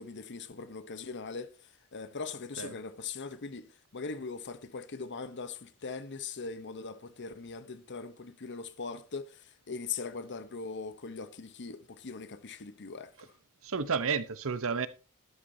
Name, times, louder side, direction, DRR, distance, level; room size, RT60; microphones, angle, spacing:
voice 1, 0.0-13.3, left 4 dB, 55° left, 0.8 m, -41 dB
voice 2, 13.6-14.9, right 5 dB, 65° right, 0.8 m, -31 dB
12.5 x 12.0 x 2.7 m
head